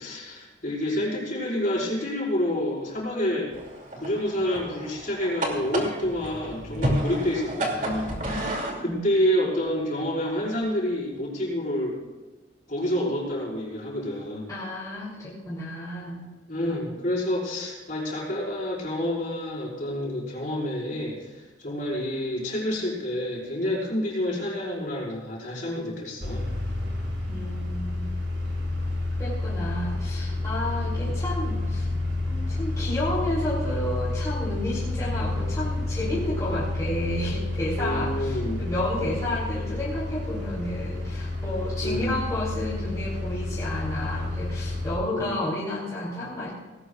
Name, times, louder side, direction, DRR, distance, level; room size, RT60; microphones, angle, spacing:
voice 1, 0.0-3.5 4.0-8.1 8.8-12.0 12.7-14.5 16.5-26.4 31.0-31.1 37.8-38.6 41.8-42.3 45.1-45.4, left 1 dB, 45° left, -4 dB, 5.0 m, -28 dB
sound 1, 3.5-8.8, right 1 dB, 40° right, 2.6 m, -31 dB
voice 2, 8.2-9.0 14.5-16.2 27.3-28.1 29.2-31.9 32.3-46.5, left 1 dB, 20° left, -8 dB, 3.3 m, -31 dB
sound 2, 26.2-45.0, left 2 dB, 75° right, 4.4 m, -30 dB
18.5 x 18.0 x 2.4 m, 1.3 s
head